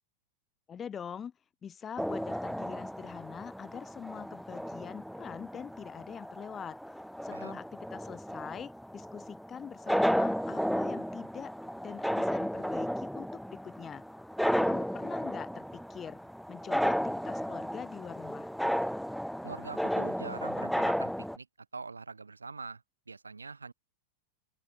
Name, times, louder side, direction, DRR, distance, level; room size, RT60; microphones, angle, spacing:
voice 1, 0.7-1.3 1.6-6.8 7.2-11.5 11.8-14.0 14.6-16.2 16.5-18.5, left 8 dB, 20° left, 3.9 m, -44 dB
sound 1, 2.0-21.4, equal, ahead, 0.7 m, -33 dB
voice 2, 19.4-21.5 21.7-22.8 23.1-23.7, right 4 dB, 75° right, 5.0 m, -43 dB
open air
figure-of-eight pair, 90°, 0 cm